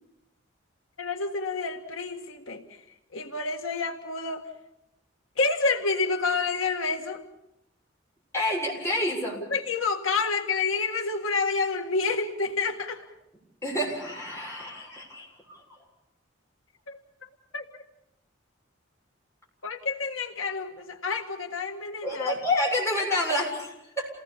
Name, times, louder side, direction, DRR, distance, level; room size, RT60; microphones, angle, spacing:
voice 1, 1.0-2.8 3.1-4.5 5.4-7.2 9.4-13.1 16.9-17.8 19.6-22.3, left 4 dB, 85° left, 4 dB, 1.8 m, -29 dB
voice 2, 8.3-9.4 13.6-15.6 22.0-24.1, left 1 dB, 15° left, -3 dB, 7.3 m, -28 dB
28.5 x 18.0 x 7.1 m, 0.85 s
head